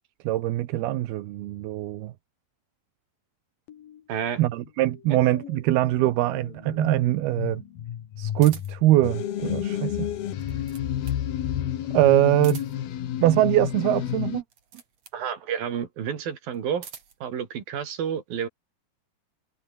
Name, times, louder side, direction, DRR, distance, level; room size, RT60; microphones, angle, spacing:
voice 1, 0.2-2.1 4.4-7.6 8.2-10.1 11.9-12.6 13.2-14.4, right 15 dB, 90° right, 3.1 m, -22 dB
sound 1, 3.7-4.0 4.3-13.1, left 10 dB, 65° left, 3.5 m, -37 dB
voice 2, 4.1-4.4 15.1-16.9 17.2-18.5, right 8 dB, 70° right, 4.5 m, -30 dB
sound 2, 8.4-8.9 10.2-11.3 12.3-13.0 14.4-15.2 16.5-17.3, right 7 dB, 45° right, 3.9 m, -46 dB
sound 3, 9.0-14.4, left 11 dB, 85° left, 3.8 m, -30 dB
omnidirectional pair, 4.4 m